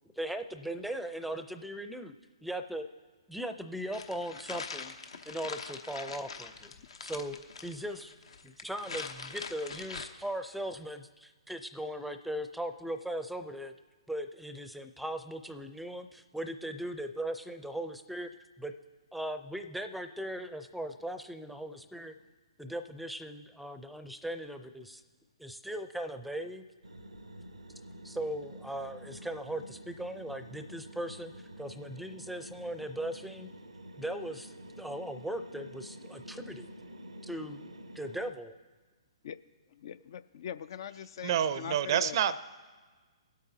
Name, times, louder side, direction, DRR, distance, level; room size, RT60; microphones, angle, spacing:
voice 1, 0.2-2.1 2.4-2.8 3.3-4.9 5.3-6.7 7.0-7.4 7.6-8.1 8.4-13.7 14.1-18.3 18.6-18.7 19.1-22.1 22.6-25.0 25.4-26.6 28.0-31.3 31.6-33.5 34.0-36.7 37.2-38.6, right 1 dB, ahead, 9 dB, 0.5 m, -38 dB
sound 1, 3.9-10.1, left 5 dB, 75° left, 0.9 m, -43 dB
sound 2, 26.8-38.3, right 1 dB, 90° right, 0.7 m, -48 dB
voice 2, 39.7-42.2, left 9 dB, 55° left, 14 dB, 0.4 m, -42 dB
voice 3, 41.2-42.4, right 9 dB, 50° right, 15 dB, 0.5 m, -28 dB
22.5 x 8.4 x 2.8 m, 1.4 s
figure-of-eight pair, 130°, 3 cm